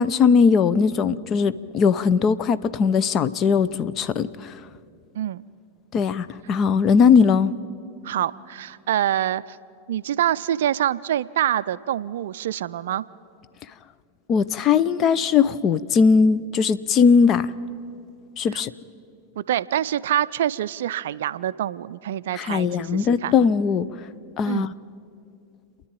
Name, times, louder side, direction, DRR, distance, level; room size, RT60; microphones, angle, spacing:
voice 1, 0.0-4.5 5.9-7.5 14.3-17.5 18.4-18.7 22.3-23.9 24.4-24.7, left 6 dB, 30° left, 15 dB, 0.6 m, -19 dB
voice 2, 8.0-9.6 9.9-13.1 18.5-18.6 19.4-23.3 24.5-24.7, right 11 dB, 60° right, 17 dB, 0.4 m, -26 dB
29.0 x 10.5 x 8.8 m, 2.5 s
figure-of-eight pair, 90°, 0 cm